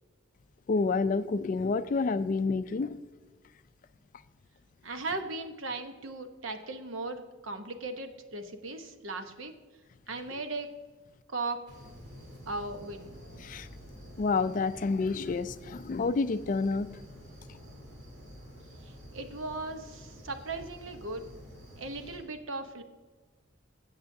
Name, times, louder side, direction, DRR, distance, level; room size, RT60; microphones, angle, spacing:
voice 1, 0.7-3.0 13.4-13.7 14.2-16.9, left 4 dB, 40° left, 13 dB, 0.3 m, -29 dB
voice 2, 4.8-9.5 10.1-10.7 11.3-11.6 12.5-13.1 18.8-21.3 21.8-22.8, right 2 dB, 80° right, 7 dB, 0.9 m, -37 dB
sound 1, 11.7-22.2, equal, 55° right, 3.1 m, -49 dB
17.0 x 7.9 x 2.7 m, 1.3 s
head